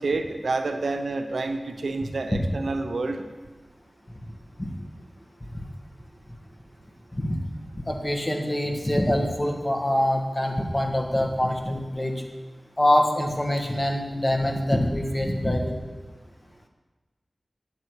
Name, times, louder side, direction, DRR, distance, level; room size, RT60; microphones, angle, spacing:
voice 1, 0.0-3.2, right 3 dB, 90° right, 7 dB, 0.6 m, -28 dB
voice 2, 7.8-12.1 12.8-15.8, left 1 dB, 25° left, 2 dB, 1.5 m, -24 dB
9.7 x 7.2 x 4.7 m, 1.3 s
wide cardioid pair, 45°, 0 cm